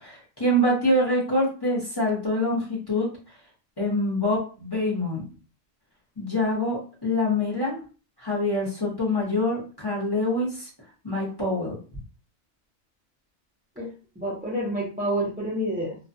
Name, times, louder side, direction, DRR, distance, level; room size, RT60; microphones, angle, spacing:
voice 1, 0.0-3.1 3.8-5.2 6.2-7.8 8.2-10.7 11.0-11.7, left 1 dB, 20° left, -6 dB, 0.8 m, -25 dB
voice 2, 13.8-16.0, right 1 dB, 10° right, -5 dB, 0.4 m, -29 dB
2.5 x 2.2 x 2.6 m, 0.36 s
omnidirectional pair, 1.4 m